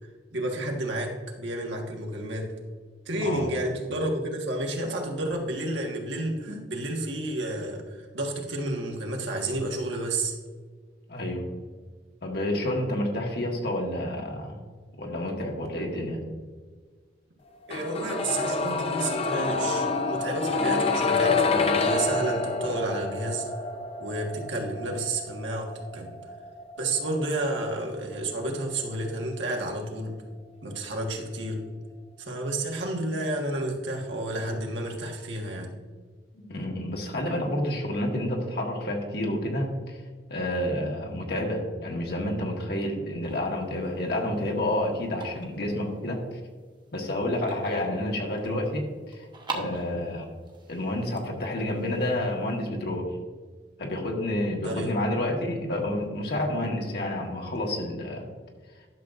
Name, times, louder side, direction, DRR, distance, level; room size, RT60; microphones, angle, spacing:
voice 1, 0.3-2.5 3.0-10.4 16.0-16.1 17.7-23.5 24.0-26.2 26.8-30.2 30.6-31.6 32.2-35.7 54.6-55.0, right 1 dB, 85° right, 1 dB, 1.5 m, -31 dB
voice 2, 3.2-3.5 11.1-11.6 12.2-14.6 15.0-16.3 36.3-40.0 40.3-46.4 46.9-49.2 49.5-50.2 50.7-53.1 53.8-58.3, left 1 dB, 60° left, 1 dB, 1.5 m, -29 dB
sound 1, 17.7-29.5 29.8-29.9, left 3 dB, 35° left, 0.6 m, -28 dB
sound 2, 43.2-52.6, right 3 dB, 25° right, 1.0 m, -44 dB
11.5 x 6.5 x 2.5 m, 1.5 s
head